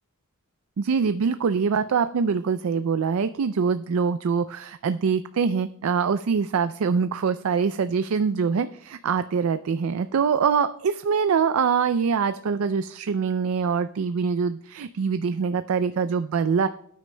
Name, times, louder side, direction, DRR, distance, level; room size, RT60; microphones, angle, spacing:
voice 1, 0.8-16.7, right 6 dB, 75° right, 11 dB, 0.4 m, -24 dB
20.0 x 9.3 x 2.2 m, 0.72 s
head